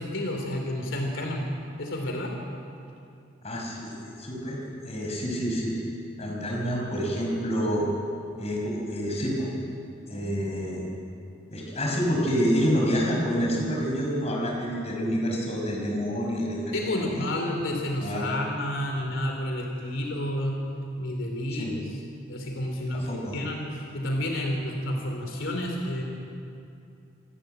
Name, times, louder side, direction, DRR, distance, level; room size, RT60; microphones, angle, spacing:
voice 1, 0.0-1.5 1.8-2.3 16.7-20.6 21.0-22.0 22.3-26.0, left 1 dB, 80° left, 1 dB, 2.9 m, -30 dB
voice 2, 3.4-5.7 6.2-7.9 8.4-9.5 10.1-10.8 11.5-17.3 18.0-18.4 21.5-21.8 22.9-23.4, equal, 35° left, -2 dB, 5.3 m, -28 dB
26.5 x 12.5 x 9.1 m, 2.6 s
head